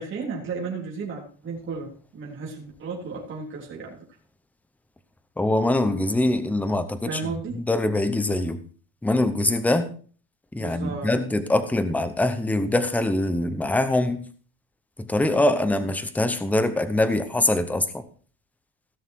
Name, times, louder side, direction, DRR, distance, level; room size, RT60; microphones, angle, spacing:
voice 1, 0.0-4.0 7.0-7.6 10.6-11.1, right 4 dB, 30° right, -3 dB, 3.4 m, -34 dB
voice 2, 5.4-8.6 9.0-9.9 10.5-14.3 15.0-18.0, left 1 dB, 5° left, 10 dB, 0.8 m, -23 dB
16.5 x 6.5 x 4.7 m, 0.43 s
cardioid pair, 155°, 40 cm